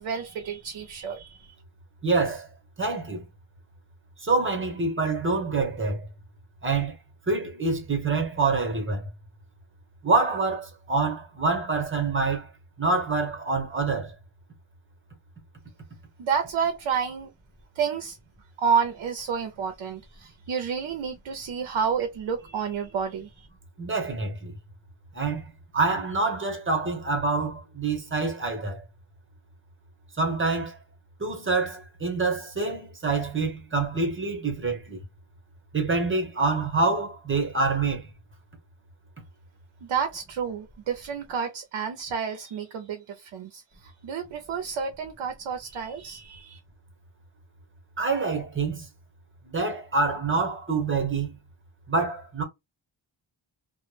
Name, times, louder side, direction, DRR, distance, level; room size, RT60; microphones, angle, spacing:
voice 1, 0.0-1.5 16.2-17.3 17.7-18.2 18.6-23.5 39.8-46.6, right 6 dB, 70° right, 0.5 m, -30 dB
voice 2, 2.0-2.5 2.8-3.2 4.2-6.0 6.6-7.0 7.3-9.1 10.0-12.5 12.8-14.1 23.8-24.5 25.1-25.4 25.7-28.8 30.2-30.8 31.2-35.0 35.7-38.1 48.0-48.9 49.4-51.4 51.9-52.4, right 3 dB, 25° right, 0.8 m, -26 dB
2.1 x 2.1 x 3.1 m
wide cardioid pair, 140°, 48 cm